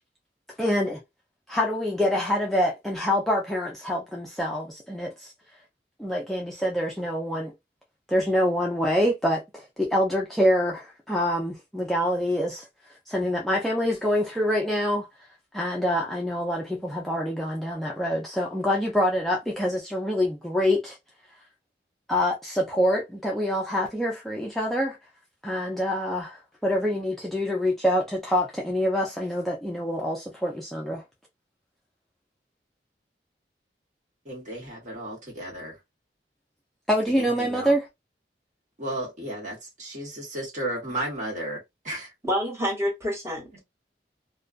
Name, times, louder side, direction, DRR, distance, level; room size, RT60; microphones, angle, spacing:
voice 1, 0.6-1.0 1.5-5.3 6.0-7.5 8.1-15.3 15.5-21.0 22.1-25.0 25.4-31.0 36.9-37.9, equal, ahead, 0.4 m, -26 dB
voice 2, 34.2-35.8 37.2-37.7 38.8-42.1 43.5-43.6, right 1 dB, 45° right, 1.2 m, -34 dB
voice 3, 42.2-43.6, equal, 15° right, 1.1 m, -28 dB
2.3 x 2.2 x 2.4 m
head